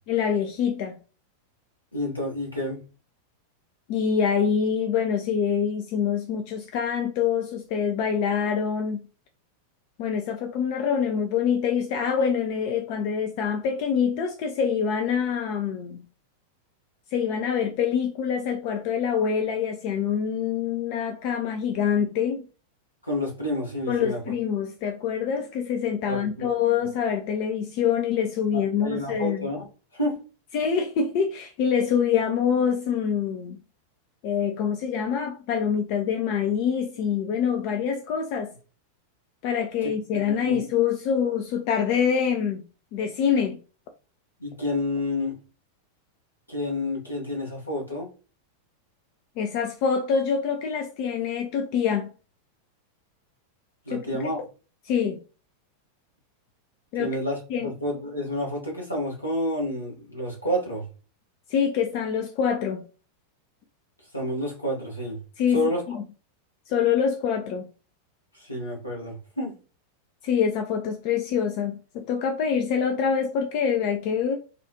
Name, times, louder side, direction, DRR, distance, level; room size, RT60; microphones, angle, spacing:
voice 1, 0.1-1.0 3.9-9.0 10.0-16.0 17.1-22.5 23.9-29.5 30.5-33.6 34.2-38.5 39.4-42.6 42.9-43.6 49.4-52.1 53.9-54.0 54.9-55.2 56.9-57.1 57.5-57.7 61.5-62.9 65.4-66.0 66.7-67.7 70.2-74.4, left 7 dB, 45° left, 0.5 m, -25 dB
voice 2, 1.9-2.8 23.0-24.2 26.1-26.5 26.8-26.9 28.5-29.6 29.9-30.2 39.8-40.6 44.4-45.4 46.5-48.1 53.9-54.4 57.0-60.9 64.1-65.2 65.5-66.0 68.3-69.5, left 1 dB, 85° left, 1.4 m, -29 dB
3.4 x 2.4 x 2.9 m
figure-of-eight pair, 90°, 0 cm